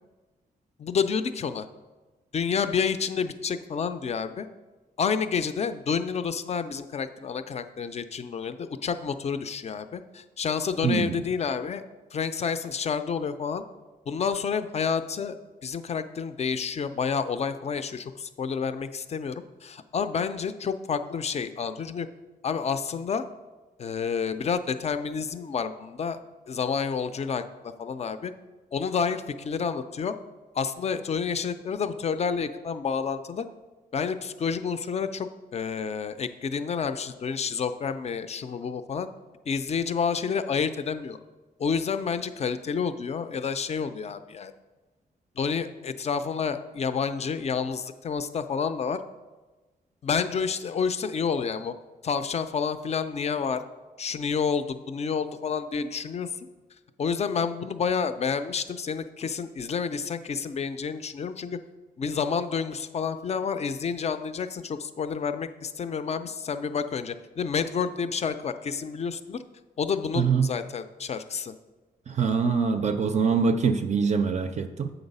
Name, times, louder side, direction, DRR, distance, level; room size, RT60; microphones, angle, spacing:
voice 1, 0.8-1.7 2.3-4.5 5.0-11.8 12.1-13.6 14.1-15.3 15.6-22.1 22.4-23.2 23.8-26.2 26.5-28.3 28.7-30.1 30.5-33.5 33.9-39.1 39.5-41.2 41.6-44.5 45.4-49.0 50.0-51.7 52.0-53.6 54.0-56.3 57.0-61.6 62.0-69.4 69.8-71.5, left 6 dB, 40° left, 11 dB, 0.4 m, -29 dB
voice 2, 10.8-11.2 70.2-70.5 72.1-74.9, right 5 dB, 45° right, 7 dB, 0.4 m, -24 dB
7.9 x 3.9 x 5.4 m, 1.2 s
wide cardioid pair, 115°, 16 cm